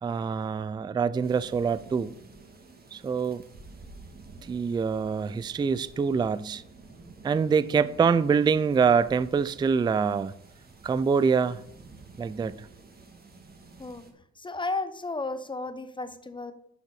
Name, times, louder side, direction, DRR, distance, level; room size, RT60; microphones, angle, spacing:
voice 1, 0.0-2.2 2.9-3.4 4.4-6.6 7.2-10.3 10.8-11.6 12.2-12.7, right 6 dB, 15° right, 0.3 m, -25 dB
sound 1, 1.2-14.1, right 3 dB, 30° right, 1.7 m, -51 dB
voice 2, 14.4-16.5, left 3 dB, 15° left, 0.9 m, -33 dB
10.5 x 5.3 x 4.9 m
cardioid pair, 90°, 30 cm